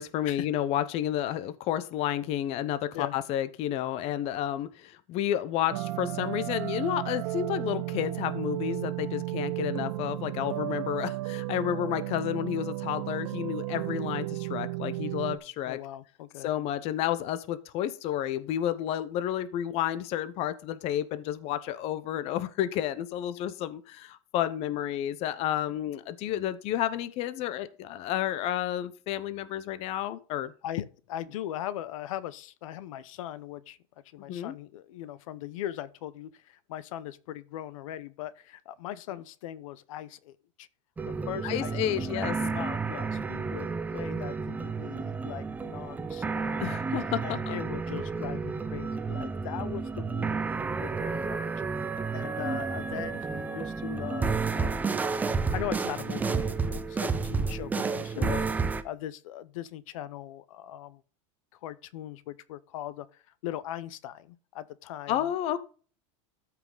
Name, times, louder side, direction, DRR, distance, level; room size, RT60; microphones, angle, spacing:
voice 1, 0.0-15.8 16.4-30.5 34.3-34.5 41.4-42.3 46.6-47.6 57.3-57.5 58.2-58.4 65.1-65.6, left 11 dB, 35° left, 0.8 m, -31 dB
sound 1, 5.7-15.4, right 19 dB, 65° right, 1.1 m, -34 dB
voice 2, 15.7-16.5 30.6-33.8 34.0-40.7 41.0-46.7 47.2-51.5 52.1-55.0 55.4-58.5 58.8-61.0 61.5-65.3, left 12 dB, 75° left, 0.8 m, -40 dB
sound 2, 41.0-58.8, right 4 dB, 10° right, 0.6 m, -31 dB
13.5 x 5.9 x 3.9 m
supercardioid pair, 160°, 17 cm